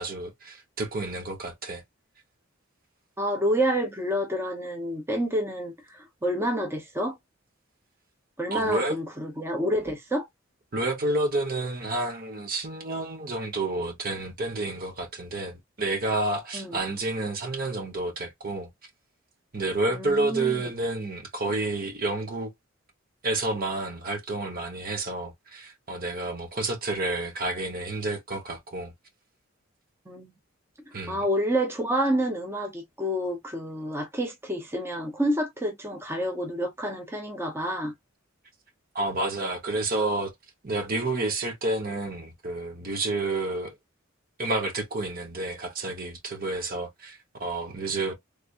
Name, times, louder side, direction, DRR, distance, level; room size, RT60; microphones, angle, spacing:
voice 1, 0.0-1.8 8.5-9.0 10.7-18.7 19.5-22.5 23.2-28.9 30.9-31.2 38.9-40.3 40.6-43.7 44.4-48.1, right 2 dB, 45° right, 1.1 m, -30 dB
voice 2, 3.2-7.2 8.4-10.2 16.5-16.8 19.9-20.5 30.1-30.3 31.1-37.9, equal, 10° right, 0.9 m, -28 dB
3.4 x 3.1 x 2.5 m
head